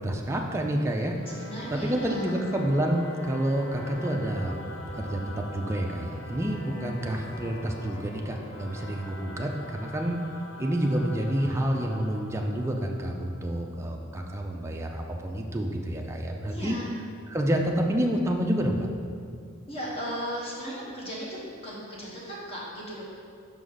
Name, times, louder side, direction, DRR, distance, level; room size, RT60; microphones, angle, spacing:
voice 1, 0.0-1.1 1.7-4.6 4.9-10.2 10.6-16.8 17.3-18.9, right 1 dB, 15° right, 1 dB, 0.4 m, -28 dB
Singing / Musical instrument, 1.1-14.0, left 1 dB, 65° left, 0.7 m, -43 dB
voice 2, 1.3-2.5 16.4-16.8 19.7-23.0, equal, 30° left, -6 dB, 1.2 m, -36 dB
5.2 x 4.8 x 3.9 m, 2.3 s
head